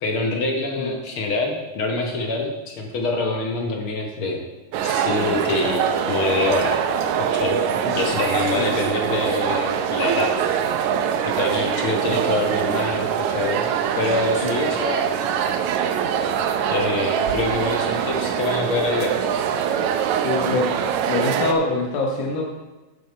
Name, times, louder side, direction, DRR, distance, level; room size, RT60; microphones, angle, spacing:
voice 1, 0.0-4.4 4.8-6.8 7.2-10.4 11.2-13.7 14.0-15.1 16.7-19.2, left 2 dB, 65° left, 2 dB, 1.4 m, -25 dB
sound 1, 4.7-21.5, right 8 dB, 80° right, 2.0 m, -23 dB
voice 2, 20.2-20.8 21.1-22.4, left 3 dB, 85° left, -1 dB, 2.6 m, -24 dB
10.0 x 7.6 x 4.4 m, 1.2 s
omnidirectional pair, 3.4 m